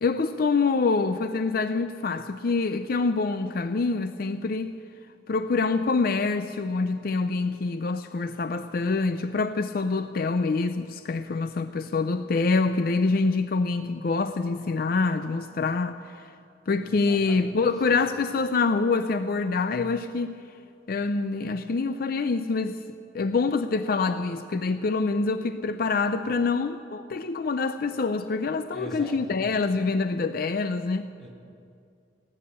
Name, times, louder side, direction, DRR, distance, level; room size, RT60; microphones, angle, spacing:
voice 1, 0.0-4.7 5.3-16.0 16.7-20.4 20.9-22.8 23.1-31.1, left 4 dB, 55° left, 0.5 m, -26 dB
voice 2, 16.8-18.0 28.7-29.4 31.2-31.3, equal, 5° left, 3.2 m, -42 dB
18.0 x 8.8 x 8.8 m
head